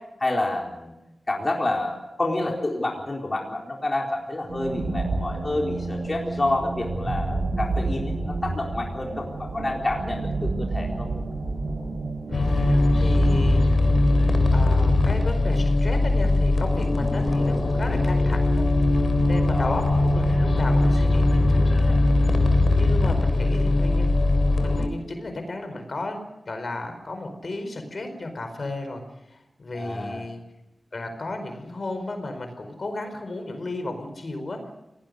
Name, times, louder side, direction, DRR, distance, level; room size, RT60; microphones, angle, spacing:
voice 1, 0.2-0.9 1.3-11.1 19.5-20.0 29.7-30.2, left 2 dB, 35° left, -1 dB, 4.1 m, -28 dB
sound 1, 4.5-15.5, right 3 dB, 60° right, 7.9 m, -30 dB
sound 2, 12.3-24.9, left 2 dB, 75° left, 3.3 m, -20 dB
voice 2, 12.3-13.6 14.5-18.7 19.3-22.0 22.7-24.2 24.5-26.2 26.5-29.0 29.3-30.4 30.9-34.7, left 2 dB, 55° left, 7 dB, 4.7 m, -33 dB
28.5 x 18.5 x 6.6 m, 0.96 s
wide cardioid pair, 90°, 0 cm